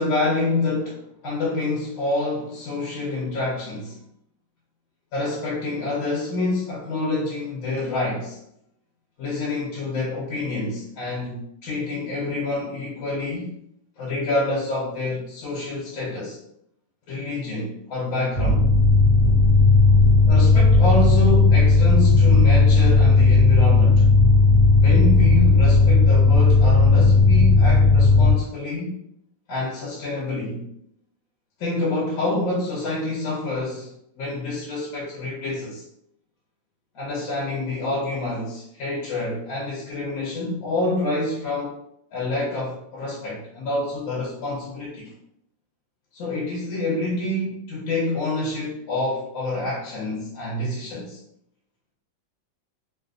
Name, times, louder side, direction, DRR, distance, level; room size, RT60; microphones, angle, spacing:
voice 1, 0.0-4.0 5.1-8.4 9.2-13.5 14.0-16.4 17.1-18.7 20.3-24.1 24.8-29.0 29.5-30.7 31.6-35.8 36.9-41.8 42.1-45.1 46.1-51.2, left 2 dB, 85° left, -6 dB, 1.7 m, -27 dB
sound 1, 18.3-28.3, left 3 dB, 35° left, 0.9 m, -15 dB
3.8 x 2.6 x 2.4 m, 0.74 s
omnidirectional pair, 2.1 m